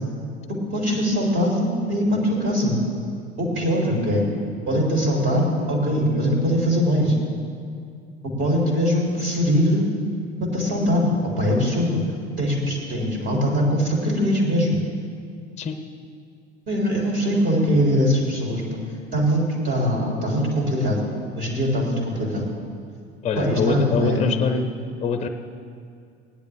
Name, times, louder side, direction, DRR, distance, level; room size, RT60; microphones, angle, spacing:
voice 1, 0.5-2.7 3.4-4.2 4.6-7.1 8.2-9.9 10.4-12.0 12.4-14.8 16.7-18.6 19.1-21.0 21.3-22.4 23.4-24.2, equal, 35° right, -2 dB, 2.8 m, -22 dB
voice 2, 23.2-24.6 25.0-25.3, left 5 dB, 20° left, 7 dB, 0.7 m, -24 dB
16.5 x 10.5 x 3.4 m, 2.4 s
figure-of-eight pair, 70°, 33 cm